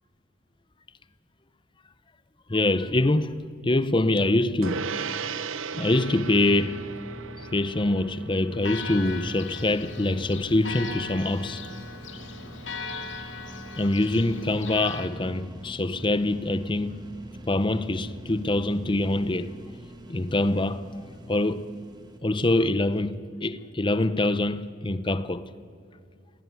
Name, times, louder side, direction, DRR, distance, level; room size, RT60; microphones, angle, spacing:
voice 1, 2.5-4.9 5.7-6.8 7.5-11.6 13.7-17.0 17.5-19.5 20.1-20.9 21.3-21.7 22.2-25.4, left 2 dB, 25° left, 0.7 m, -24 dB
Gong, 4.6-14.3, right 5 dB, 85° right, 0.8 m, -39 dB
sound 1, 5.8-22.2, right 1 dB, 20° right, 1.7 m, -44 dB
Church bell, 8.6-15.1, left 4 dB, 70° left, 2.2 m, -39 dB
18.5 x 16.5 x 9.5 m
head